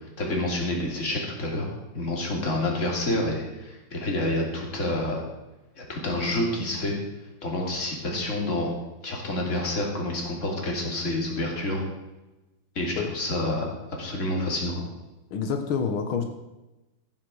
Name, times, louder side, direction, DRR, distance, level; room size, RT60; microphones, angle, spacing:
voice 1, 0.2-5.2 5.8-7.0 7.4-8.7 9.0-11.8 12.7-13.6 14.0-14.8, left 1 dB, 35° left, -1 dB, 3.1 m, -28 dB
voice 2, 15.3-16.2, left 6 dB, 90° left, 5 dB, 2.0 m, -28 dB
14.5 x 8.1 x 6.3 m, 1.0 s
omnidirectional pair, 2.2 m